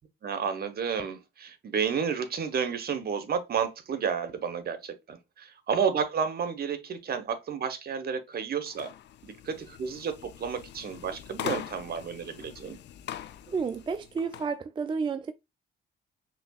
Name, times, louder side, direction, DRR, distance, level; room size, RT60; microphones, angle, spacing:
voice 1, 0.2-8.9 9.2-12.8, right 6 dB, 50° right, 0.9 m, -31 dB
sound 1, 8.7-14.5, left 11 dB, 60° left, 0.4 m, -42 dB
voice 2, 13.5-15.3, right 5 dB, 25° right, 0.3 m, -31 dB
5.8 x 2.8 x 2.3 m
cardioid pair, 90°, 20 cm